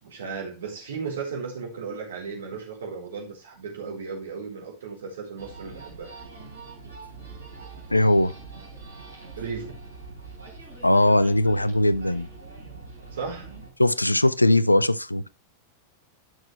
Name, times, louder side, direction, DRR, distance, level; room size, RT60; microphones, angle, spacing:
voice 1, 0.0-6.1 9.4-9.8 13.1-13.5, right 5 dB, 65° right, 3.6 m, -35 dB
sound 1, 5.4-13.7, right 4 dB, 80° right, 3.6 m, -43 dB
voice 2, 7.9-8.3 10.8-12.3 13.8-15.2, left 1 dB, 85° left, 0.5 m, -20 dB
12.0 x 6.4 x 3.2 m
figure-of-eight pair, 90°, 0 cm